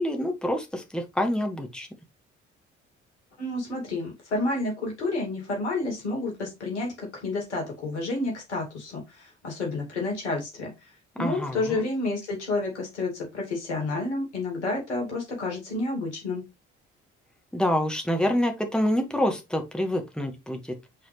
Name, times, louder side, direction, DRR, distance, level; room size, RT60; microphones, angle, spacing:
voice 1, 0.0-1.9 11.2-11.8 17.5-20.8, left 1 dB, ahead, 1.5 m, -27 dB
voice 2, 3.4-10.7 11.2-16.4, left 2 dB, 80° left, 2.2 m, -30 dB
7.3 x 4.1 x 3.2 m
figure-of-eight pair, 50°, 34 cm